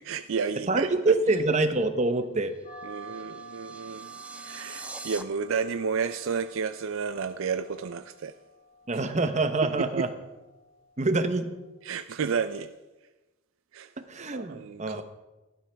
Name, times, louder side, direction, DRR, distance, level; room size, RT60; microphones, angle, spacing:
voice 1, 0.0-1.2 2.8-8.3 9.6-10.1 11.8-12.7 13.7-13.9 14.3-15.0, right 6 dB, 70° right, 0.4 m, -31 dB
voice 2, 0.7-2.6 8.9-10.1 11.0-11.5 14.0-15.0, right 2 dB, 35° right, 0.9 m, -26 dB
sound 1, 2.5-5.2, right 2 dB, 5° right, 0.5 m, -44 dB
sound 2, 2.6-11.7, right 4 dB, 35° left, 1.7 m, -49 dB
16.5 x 12.0 x 3.4 m
head